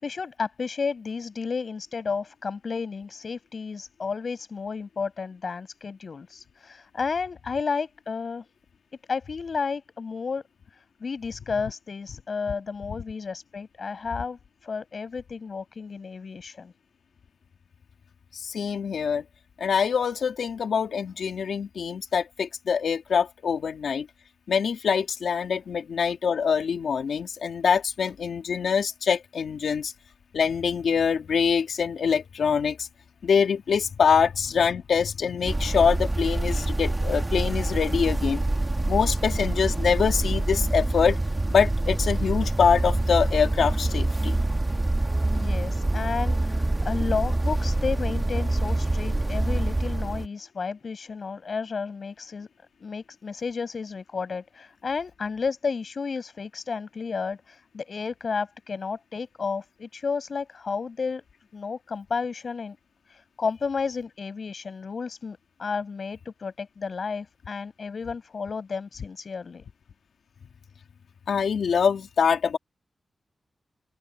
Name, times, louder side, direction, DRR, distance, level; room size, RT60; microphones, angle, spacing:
voice 1, 0.0-8.5 9.1-10.4 10.7-16.7 45.3-52.5 52.8-61.2 61.5-62.8 63.1-69.6, left 5 dB, 55° left, 7.6 m, -32 dB
voice 2, 18.3-19.2 19.6-24.1 24.5-29.9 30.3-32.9 33.2-38.4 38.9-41.2 41.5-44.3 71.3-72.6, left 6 dB, 85° left, 2.7 m, -24 dB
sound 1, 35.5-50.3, right 2 dB, 20° right, 1.6 m, -26 dB
open air
wide cardioid pair, 115°, 0 cm